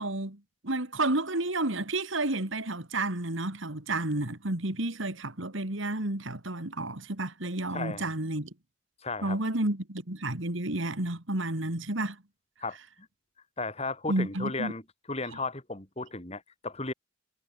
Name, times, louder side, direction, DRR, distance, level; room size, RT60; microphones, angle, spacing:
voice 1, 0.0-8.5 9.2-12.2 14.1-14.7, right 2 dB, 65° right, 2.8 m, -31 dB
voice 2, 7.7-8.0 9.0-9.4 12.6-12.8 13.6-14.8 15.1-16.9, left 3 dB, 30° left, 2.6 m, -34 dB
head